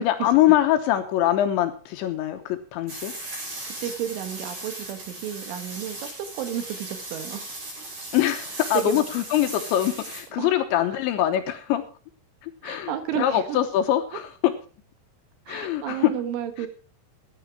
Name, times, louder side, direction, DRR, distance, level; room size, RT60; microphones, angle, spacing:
voice 1, 0.0-3.1 8.1-11.8 12.4-14.5 15.5-16.1 16.6-16.7, left 12 dB, 75° left, 8 dB, 3.0 m, -23 dB
sound 1, 2.9-10.2, right 2 dB, 40° right, 6.7 m, -37 dB
voice 2, 3.7-7.5 8.7-9.2 10.4-10.5 10.7-10.8 12.6-13.6 15.5-16.7, right 10 dB, 75° right, 9 dB, 3.7 m, -32 dB
15.0 x 10.5 x 4.7 m, 0.39 s
omnidirectional pair, 5.8 m